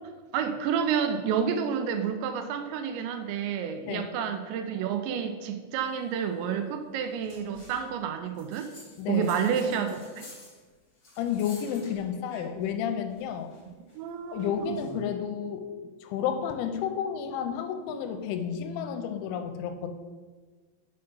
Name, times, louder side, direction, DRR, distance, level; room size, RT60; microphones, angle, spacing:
voice 1, 0.3-8.7 9.1-10.3 14.0-14.8, right 7 dB, 85° right, 8 dB, 2.7 m, -30 dB
sound 1, 7.2-7.9 8.3-12.7 13.1-14.9, left 2 dB, 45° left, 1.3 m, -51 dB
voice 2, 9.0-9.8 11.2-13.5 14.3-15.7 16.0-19.9, left 8 dB, 85° left, 7 dB, 2.9 m, -31 dB
6.7 x 5.7 x 5.4 m, 1.4 s
omnidirectional pair, 5.3 m